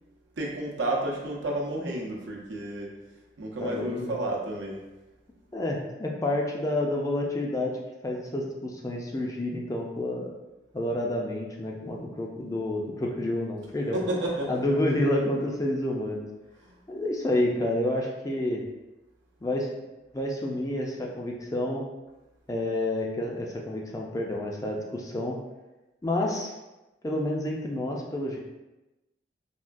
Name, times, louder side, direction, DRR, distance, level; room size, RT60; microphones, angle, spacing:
voice 1, 0.4-2.9 3.4-4.8 13.9-14.5 16.6-16.7, right 1 dB, 85° right, -1 dB, 0.6 m, -31 dB
voice 2, 3.6-4.2 5.5-7.7 8.0-10.3 10.7-14.0 14.5-16.3 16.9-18.6 19.4-19.8 20.1-21.8 22.5-25.4 26.0-26.5 27.0-28.4, left 1 dB, 20° left, -1 dB, 0.3 m, -29 dB
3.4 x 2.2 x 2.5 m, 1.0 s
head